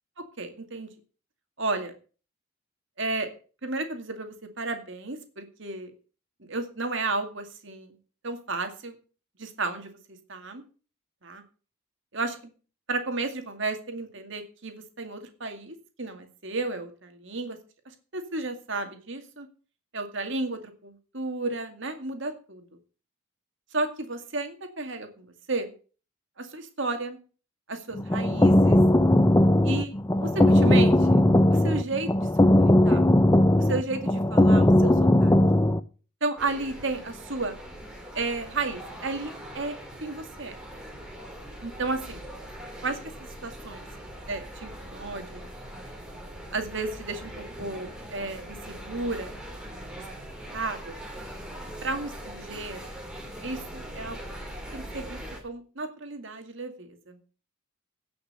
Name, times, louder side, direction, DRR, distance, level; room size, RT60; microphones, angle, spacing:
voice 1, 0.4-0.9 1.6-1.9 3.0-3.3 3.6-5.9 6.5-8.0 8.2-9.0 9.4-9.9 10.3-10.6 11.2-11.4 12.1-12.5 12.9-17.6 18.1-19.5 19.9-22.6 23.7-25.7 26.4-27.2 27.7-28.8 29.6-31.2 31.5-33.1 33.6-35.4 36.2-37.6 38.1-39.7 40.0-40.6 41.6-42.2 42.8-43.0 43.4-43.8 44.3-45.5 46.5-47.3 47.6-49.4 50.0-50.2 50.5-50.9 51.8-52.8 53.4-54.2 54.7-57.2, right 3 dB, 60° right, 6 dB, 2.2 m, -33 dB
sound 1, 27.9-35.8, left 1 dB, 15° left, 0.5 m, -19 dB
sound 2, 36.4-55.4, right 1 dB, 5° right, 2.9 m, -41 dB
16.5 x 6.0 x 6.6 m, 0.38 s
head